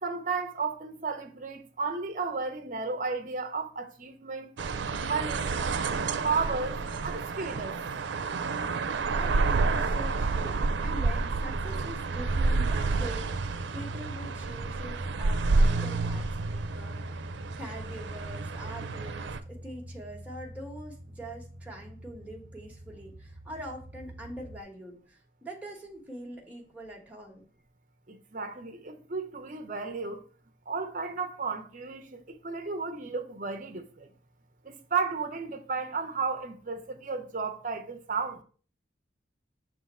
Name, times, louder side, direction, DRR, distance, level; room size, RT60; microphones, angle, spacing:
voice 1, 0.0-4.5 5.0-5.6 6.2-6.8 7.0-7.8 28.1-30.2 30.7-34.1 34.6-38.4, right 4 dB, 45° right, 0.8 m, -33 dB
sound 1, 4.6-19.4, right 3 dB, 90° right, 0.5 m, -29 dB
sound 2, 8.6-24.6, equal, 65° right, 1.0 m, -44 dB
voice 2, 9.1-17.2 17.5-27.4, right 1 dB, 10° right, 1.3 m, -44 dB
6.5 x 3.6 x 4.2 m
head